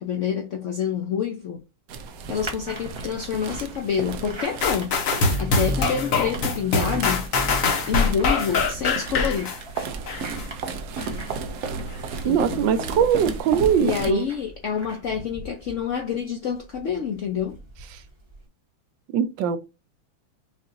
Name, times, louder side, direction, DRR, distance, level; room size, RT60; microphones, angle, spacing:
voice 1, 0.0-1.6 2.3-5.0 5.4-7.3 7.9-9.5 12.2-13.0 13.8-17.6, left 7 dB, 75° left, 0.7 m, -27 dB
sound 1, 1.9-14.1, right 4 dB, 65° right, 0.9 m, -34 dB
sound 2, 2.4-18.5, right 1 dB, 15° right, 1.2 m, -43 dB
sound 3, 4.6-10.4 11.0-11.1, left 3 dB, 55° left, 1.2 m, -23 dB
voice 2, 12.2-14.3 19.1-19.6, right 8 dB, 85° right, 1.4 m, -21 dB
5.7 x 2.5 x 2.6 m
omnidirectional pair, 2.0 m